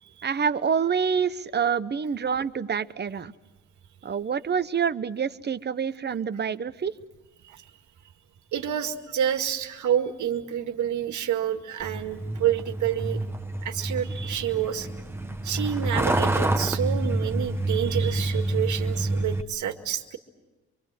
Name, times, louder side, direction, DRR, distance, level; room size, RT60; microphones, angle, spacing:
voice 1, 0.2-3.3 4.0-6.9, right 7 dB, 35° right, 13 dB, 1.0 m, -27 dB
voice 2, 8.5-13.2 13.6-14.9 15.4-20.2, right 10 dB, 75° right, 6 dB, 2.0 m, -28 dB
Truck, 11.8-19.4, right 2 dB, 10° right, 1.3 m, -28 dB
25.5 x 24.0 x 7.6 m, 1.1 s
cardioid pair, 90°, 30 cm